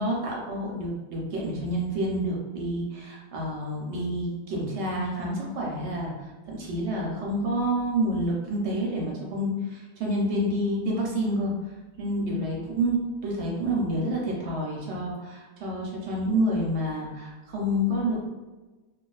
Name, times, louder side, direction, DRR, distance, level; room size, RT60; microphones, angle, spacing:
voice 1, 0.0-6.1 6.5-11.5 12.0-18.3, equal, 65° right, -2 dB, 0.7 m, -28 dB
2.3 x 2.3 x 2.3 m, 1.2 s
omnidirectional pair, 1.4 m